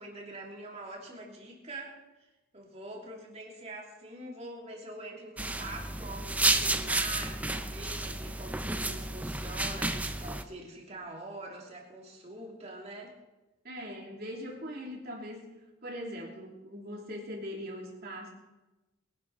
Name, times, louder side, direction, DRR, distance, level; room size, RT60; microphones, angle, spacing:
voice 1, 0.0-13.1, right 2 dB, 30° right, -1 dB, 2.9 m, -44 dB
sound 1, 5.4-10.4, right 2 dB, 5° right, 0.5 m, -31 dB
voice 2, 13.6-15.5 15.8-18.3, equal, 45° right, -1 dB, 3.0 m, -41 dB
22.5 x 11.0 x 4.2 m, 1.1 s
head